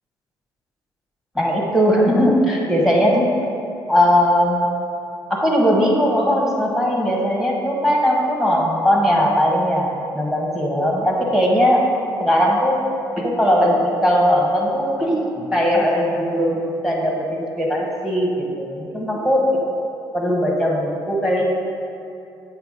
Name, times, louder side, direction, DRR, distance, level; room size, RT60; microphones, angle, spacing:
voice 1, 1.3-3.2 3.9-4.7 5.3-11.8 12.2-12.8 13.1-19.7 20.1-21.4, equal, 5° right, -1 dB, 1.6 m, -19 dB
8.0 x 3.2 x 5.2 m, 2.6 s
hypercardioid pair, 45°, 11 cm